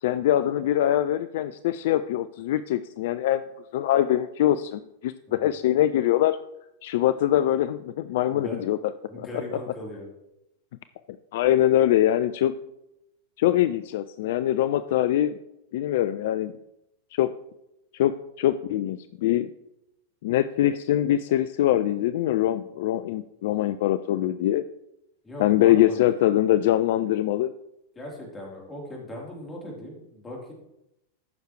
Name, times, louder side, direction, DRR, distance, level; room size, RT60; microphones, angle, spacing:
voice 1, 0.0-3.4 3.7-6.4 6.8-9.3 11.3-12.6 13.4-15.4 15.7-16.5 17.1-17.3 17.9-19.5 20.2-24.6 25.4-27.5, left 12 dB, 55° left, 12 dB, 0.3 m, -23 dB
voice 2, 8.3-8.7 9.1-10.1 25.2-26.0 28.0-30.5, left 1 dB, 15° left, -3 dB, 3.9 m, -38 dB
14.0 x 6.4 x 3.3 m, 0.85 s
figure-of-eight pair, 90°, 0 cm